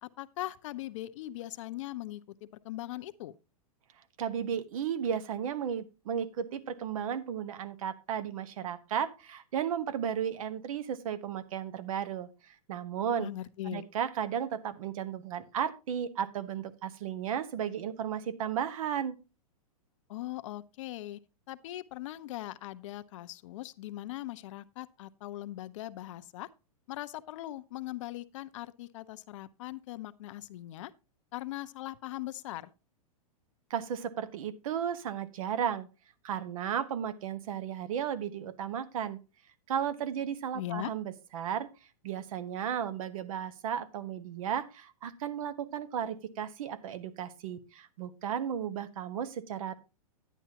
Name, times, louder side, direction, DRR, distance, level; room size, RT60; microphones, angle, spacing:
voice 1, 0.0-3.4 13.2-13.8 20.1-21.2 21.5-26.5 26.9-30.9 31.3-32.7 40.5-40.9, left 15 dB, 55° left, 0.6 m, -40 dB
voice 2, 4.2-13.3 13.7-19.1 33.7-35.9 36.2-39.2 39.7-41.7 42.0-49.7, right 8 dB, 65° right, 1.1 m, -34 dB
10.0 x 10.0 x 2.9 m
hypercardioid pair, 125°, 19 cm